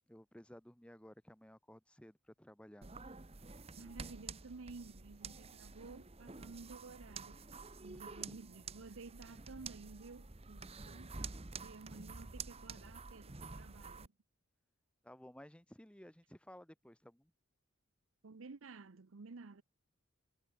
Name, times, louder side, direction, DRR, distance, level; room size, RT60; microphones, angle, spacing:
voice 1, 0.1-2.9 3.8-4.1 7.9-8.4 15.0-17.3, equal, 5° left, 0.9 m, -57 dB
sound 1, 2.8-14.1, right 4 dB, 30° right, 1.1 m, -49 dB
voice 2, 3.7-7.5 7.8-14.1 18.2-19.6, right 3 dB, 85° right, 0.8 m, -53 dB
head